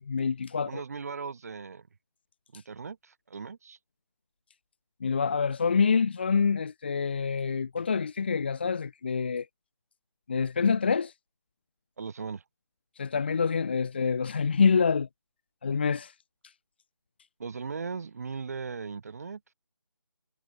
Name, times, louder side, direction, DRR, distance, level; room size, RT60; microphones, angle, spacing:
voice 1, 0.1-0.8 5.0-9.5 10.3-11.1 13.0-15.1 15.6-16.1, left 5 dB, 20° left, 1.1 m, -26 dB
voice 2, 0.7-1.9 2.5-3.8 12.0-12.4 17.4-19.4, right 5 dB, 30° right, 7.8 m, -38 dB
figure-of-eight pair, 170°, 15 cm